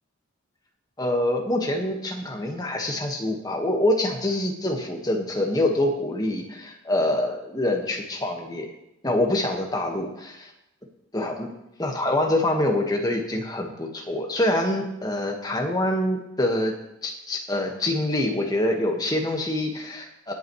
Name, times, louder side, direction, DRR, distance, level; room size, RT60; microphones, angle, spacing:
voice 1, 1.0-8.7 9.0-10.5 11.1-11.5 11.8-16.7 17.0-20.3, left 1 dB, 15° left, 2 dB, 1.5 m, -25 dB
19.0 x 8.4 x 3.2 m, 0.87 s
head